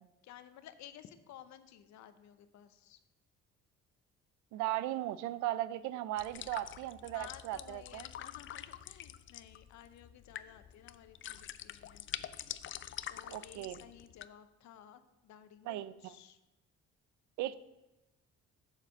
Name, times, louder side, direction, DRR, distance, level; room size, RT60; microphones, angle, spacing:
voice 1, 0.2-3.0 7.1-12.1 13.1-16.4 17.4-17.5, left 10 dB, 70° left, 11 dB, 0.8 m, -55 dB
voice 2, 4.5-8.0 13.3-13.8 15.7-16.1 17.4-17.5, right 14 dB, 85° right, 16 dB, 0.5 m, -37 dB
sound 1, 6.2-14.3, left 11 dB, 45° left, 0.4 m, -46 dB
7.7 x 4.9 x 6.6 m, 1.0 s
cardioid pair, 95°, 29 cm